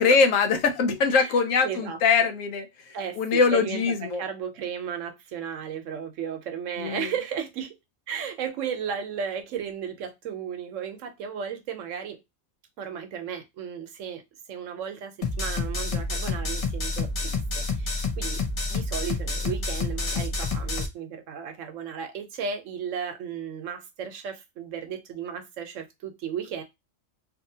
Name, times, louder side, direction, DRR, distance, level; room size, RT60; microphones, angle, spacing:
voice 1, 0.0-4.2 6.8-7.1, left 5 dB, 80° left, 1.0 m, -23 dB
voice 2, 1.6-2.0 2.9-7.7 8.1-12.2 12.8-14.2 14.5-18.4 18.7-26.6, right 7 dB, 75° right, 1.0 m, -34 dB
sound 1, 15.2-20.9, left 3 dB, 60° left, 0.3 m, -28 dB
2.6 x 2.6 x 2.7 m
omnidirectional pair, 1.3 m